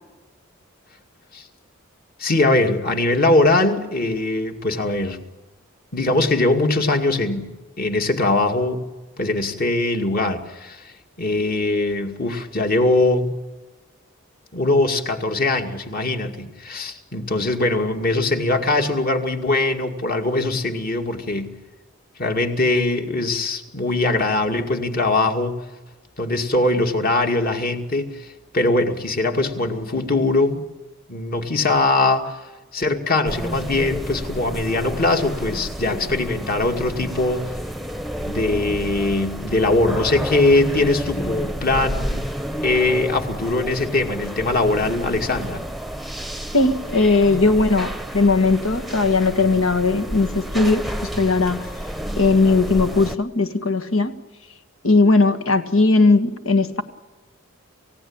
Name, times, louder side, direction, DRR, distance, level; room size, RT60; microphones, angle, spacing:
voice 1, 2.2-5.2 5.9-7.5 7.8-8.8 9.2-10.8 11.2-13.3 14.5-21.5 22.2-25.6 26.2-30.6 31.1-32.4 32.7-37.5 38.2-42.3 42.6-45.6, left 2 dB, 45° left, 4 dB, 2.3 m, -21 dB
sound 1, 33.3-53.2, equal, ahead, 0.9 m, -30 dB
voice 2, 46.5-50.9 51.1-51.6 52.2-54.2 54.8-56.8, left 3 dB, 80° left, 8 dB, 1.9 m, -18 dB
29.0 x 16.5 x 8.9 m, 1.2 s
head